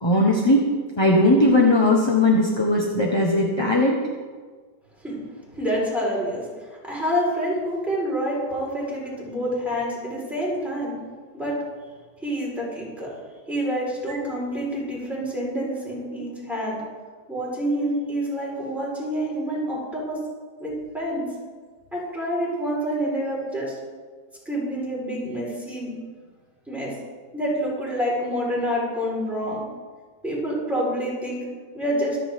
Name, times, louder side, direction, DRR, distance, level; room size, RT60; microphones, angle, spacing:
voice 1, 0.0-0.6 1.0-4.0 14.1-14.2, left 1 dB, 20° left, -1 dB, 1.1 m, -18 dB
voice 2, 5.5-6.5 6.9-11.0 11.3-11.5 12.2-13.1 13.5-16.8 17.3-20.2 20.6-21.3 21.9-23.7 24.4-25.9 26.7-26.9 27.3-29.6 30.2-31.4 31.7-32.2, equal, ahead, -6 dB, 4.5 m, -27 dB
24.5 x 8.5 x 3.7 m, 1.5 s
omnidirectional pair, 1.9 m